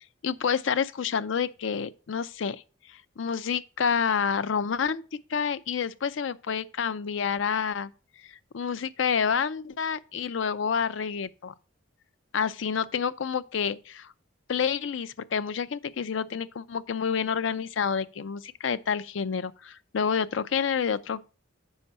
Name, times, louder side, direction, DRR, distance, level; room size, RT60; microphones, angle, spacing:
voice 1, 0.2-2.6 2.9-5.0 5.3-7.9 8.3-11.5 12.3-14.1 14.5-21.2, left 6 dB, 75° left, 0.5 m, -28 dB
7.2 x 5.3 x 5.4 m
head